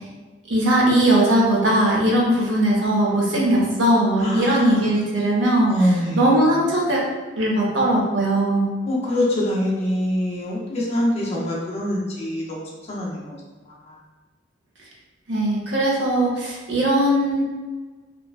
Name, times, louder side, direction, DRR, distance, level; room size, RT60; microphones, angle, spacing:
voice 1, 0.5-7.0 7.4-8.7 15.3-17.4, right 1 dB, 70° right, -3 dB, 0.7 m, -19 dB
voice 2, 4.2-4.9 5.7-6.2 8.9-13.4, left 1 dB, 35° left, -4 dB, 0.5 m, -24 dB
3.1 x 2.1 x 2.4 m, 1.3 s
head